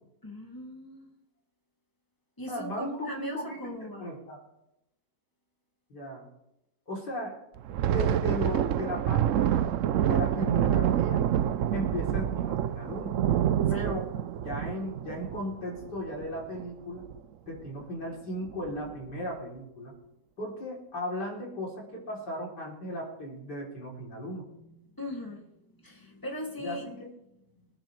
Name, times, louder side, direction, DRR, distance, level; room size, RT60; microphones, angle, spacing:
voice 1, 0.2-1.1 2.4-4.1 13.7-13.9 24.7-26.8, left 1 dB, 10° left, 0 dB, 2.5 m, -40 dB
voice 2, 2.5-4.4 5.9-6.3 6.9-7.4 7.8-9.6 10.0-11.3 11.7-13.2 13.7-14.1 14.4-17.1 17.5-19.9 20.4-24.5 26.6-27.1, equal, 75° left, -2 dB, 3.9 m, -36 dB
Thunder, 7.6-16.6 17.0-17.2 17.6-17.8 18.4-18.9, right 10 dB, 70° right, 0.7 m, -27 dB
24.0 x 10.0 x 3.3 m, 0.86 s
omnidirectional pair, 1.8 m